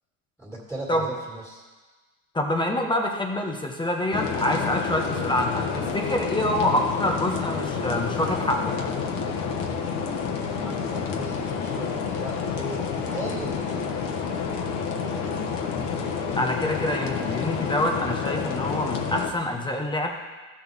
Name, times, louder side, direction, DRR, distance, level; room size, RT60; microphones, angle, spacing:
voice 1, 0.4-1.6 10.6-13.8, right 1 dB, 5° right, -5 dB, 2.3 m, -37 dB
voice 2, 2.3-8.8 16.4-20.1, left 1 dB, 10° left, 2 dB, 0.9 m, -26 dB
sound 1, 4.1-19.3, left 6 dB, 50° left, 1.2 m, -29 dB
14.0 x 6.2 x 3.6 m, 1.3 s
supercardioid pair, 125°, 41 cm